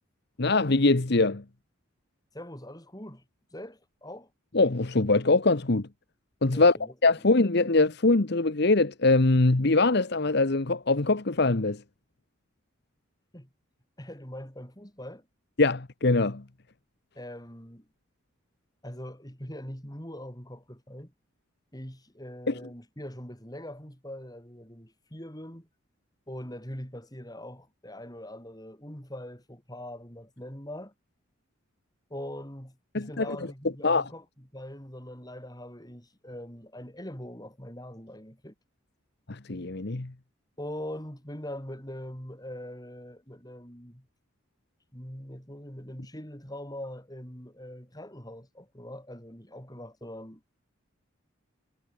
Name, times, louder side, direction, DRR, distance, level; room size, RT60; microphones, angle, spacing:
voice 1, 0.4-1.4 4.5-5.9 6.4-6.8 7.0-11.8 15.6-16.4 22.5-22.6 32.9-33.4 33.8-34.0 39.3-40.1, left 3 dB, 55° left, 1.1 m, -23 dB
voice 2, 2.3-3.2 3.5-4.3 6.5-7.2 13.3-13.5 14.0-15.3 17.2-17.9 18.8-21.1 21.7-25.7 26.3-30.9 32.1-38.5 40.6-44.1 44.9-50.4, left 1 dB, 20° left, 7.0 m, -42 dB
head